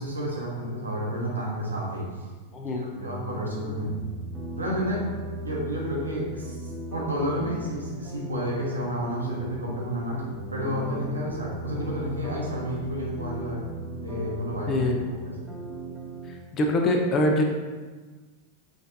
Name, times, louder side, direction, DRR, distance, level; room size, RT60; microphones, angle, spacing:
voice 1, 0.0-2.1 2.6-4.0 4.6-5.1 5.4-10.2 10.5-13.7 14.0-14.8 15.2-15.3, equal, 80° right, -3 dB, 1.1 m, -31 dB
voice 2, 2.5-2.8 14.7-15.0 16.3-17.4, left 1 dB, 30° left, 2 dB, 0.6 m, -24 dB
sound 1, 2.9-16.3, right 1 dB, 10° right, 0.9 m, -37 dB
6.0 x 3.2 x 2.6 m, 1.3 s
figure-of-eight pair, 90°, 0 cm